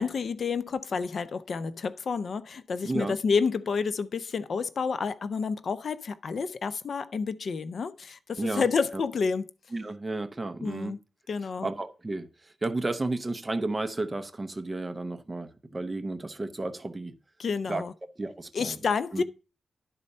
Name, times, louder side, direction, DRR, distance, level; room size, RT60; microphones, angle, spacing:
voice 1, 0.0-9.5 10.6-11.0 11.3-11.7 17.4-17.9 18.5-19.2, left 5 dB, 50° left, 0.4 m, -29 dB
voice 2, 2.8-3.1 8.4-8.7 8.9-9.0 9.7-11.0 11.6-17.1 17.7-17.8 18.2-18.8 19.1-19.2, right 2 dB, 20° right, 0.7 m, -32 dB
11.0 x 4.2 x 5.3 m
wide cardioid pair, 170°, 0 cm